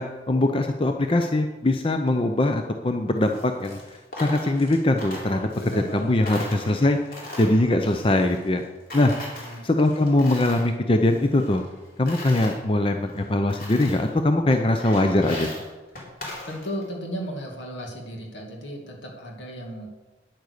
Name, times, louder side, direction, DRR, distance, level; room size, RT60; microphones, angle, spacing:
voice 1, 0.0-3.8 4.2-5.5 5.7-7.0 7.4-8.6 8.9-11.6 12.0-15.5, left 1 dB, 30° left, 5 dB, 0.6 m, -22 dB
Coin (dropping), 3.2-6.0 6.2-8.6 8.9-10.7 11.0-12.5 13.1-13.2 13.5-14.1 14.5-16.9, left 1 dB, 50° left, 3.3 m, -39 dB
voice 2, 5.6-6.5 9.4-9.6 16.5-19.9, equal, 75° left, 1 dB, 2.3 m, -35 dB
9.5 x 8.8 x 6.6 m, 1.2 s
head